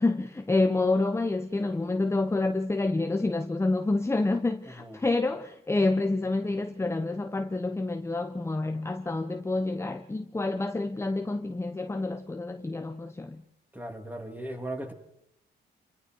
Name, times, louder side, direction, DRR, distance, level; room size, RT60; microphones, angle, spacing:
voice 1, 0.0-13.4, left 2 dB, 15° left, 1.1 m, -28 dB
voice 2, 4.7-5.0 13.7-14.9, right 1 dB, 10° right, 3.4 m, -37 dB
28.5 x 24.0 x 4.8 m
cardioid pair, 90°, 20 cm